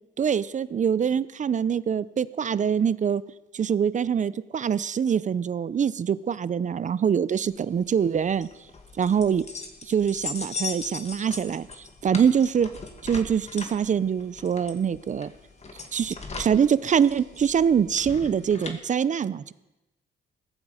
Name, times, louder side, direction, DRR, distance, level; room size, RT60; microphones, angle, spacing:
voice 1, 0.2-3.2 3.5-8.5 9.0-9.4 9.9-11.7 12.0-12.7 13.0-15.3 15.9-19.5, right 7 dB, 40° right, 17 dB, 0.6 m, -24 dB
sound 1, 7.4-18.8, left 4 dB, 35° left, 2.1 m, -39 dB
16.5 x 14.0 x 5.0 m, 1.0 s
cardioid pair, 90°, 20 cm